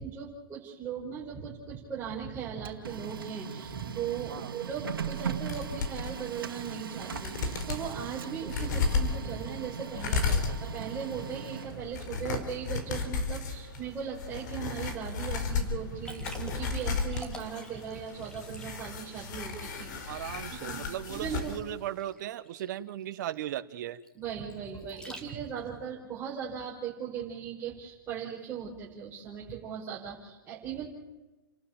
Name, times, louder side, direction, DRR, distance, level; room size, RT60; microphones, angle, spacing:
voice 1, 0.0-20.2 20.6-21.6 24.2-30.9, right 7 dB, 15° right, -6 dB, 5.2 m, -38 dB
Printer, 2.4-12.1, right 7 dB, 80° right, 2.3 m, -39 dB
sound 1, 5.5-6.1 6.7-6.8 7.0-7.9 8.5-21.6 21.9-22.0, left 4 dB, 55° left, 4.5 m, -34 dB
Liquid, 16.0-25.7, equal, 5° left, 3.0 m, -49 dB
voice 2, 20.1-24.0, right 12 dB, 55° right, 11 dB, 1.3 m, -37 dB
30.0 x 12.5 x 8.9 m, 1.1 s
hypercardioid pair, 130°, 12 cm